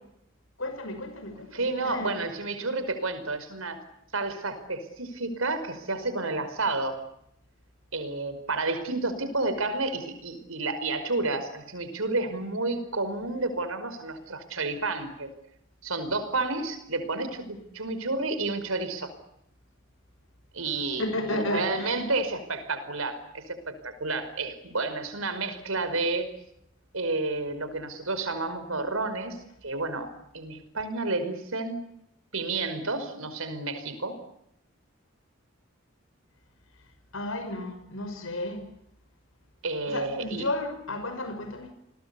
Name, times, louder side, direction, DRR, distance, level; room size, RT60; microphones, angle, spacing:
voice 1, 0.6-2.2 21.0-22.1 37.1-38.6 39.9-41.7, left 1 dB, 80° left, 7 dB, 6.0 m, -33 dB
voice 2, 1.5-3.8 4.1-7.0 7.9-15.3 15.8-19.1 20.5-26.3 26.9-29.4 29.6-31.8 32.3-34.2 39.6-40.4, right 3 dB, 90° right, 11 dB, 5.2 m, -30 dB
29.5 x 21.0 x 8.4 m, 0.76 s
head